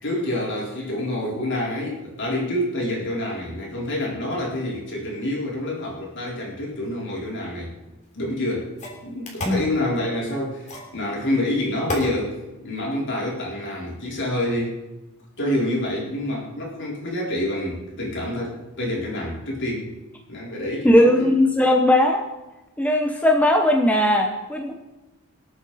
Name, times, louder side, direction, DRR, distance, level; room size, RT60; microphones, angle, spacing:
voice 1, 0.0-7.7 8.1-8.7 9.0-14.8 15.4-19.9 20.3-21.3, left 1 dB, 55° left, -3 dB, 4.2 m, -27 dB
sound 1, 8.0-8.1 8.8-9.7 10.7-11.0 11.9-12.1, left 1 dB, 35° left, 3.3 m, -31 dB
voice 2, 20.8-22.2 22.8-24.7, left 1 dB, 5° left, 2 dB, 0.9 m, -18 dB
25.0 x 8.6 x 4.2 m, 1.0 s
head